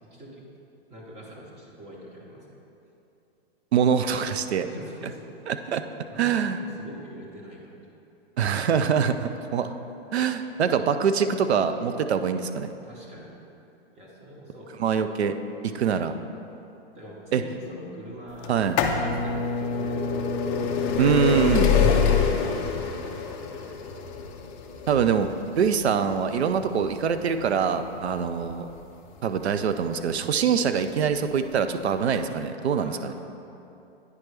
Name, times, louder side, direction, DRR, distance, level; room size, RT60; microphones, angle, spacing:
voice 1, 0.0-0.4 0.9-2.7 4.6-5.2 6.1-7.8 12.8-13.3 14.0-14.9 16.9-18.6 18.9-20.8 21.9-23.5 32.7-33.1, right 1 dB, 20° right, -3 dB, 1.1 m, -43 dB
voice 2, 3.7-4.7 5.5-5.8 6.2-6.6 8.4-9.7 10.1-12.7 14.8-15.3 15.6-16.2 17.3-17.4 18.5-18.8 21.0-21.8 24.9-25.3 25.6-28.7 29.2-33.1, right 7 dB, 90° right, 9 dB, 0.5 m, -24 dB
sound 1, 18.4-30.1 30.9-31.0 32.0-32.1 32.2-32.3, left 6 dB, 25° left, 0.4 m, -26 dB
9.6 x 4.5 x 3.3 m, 2.8 s
hypercardioid pair, 135°, 31 cm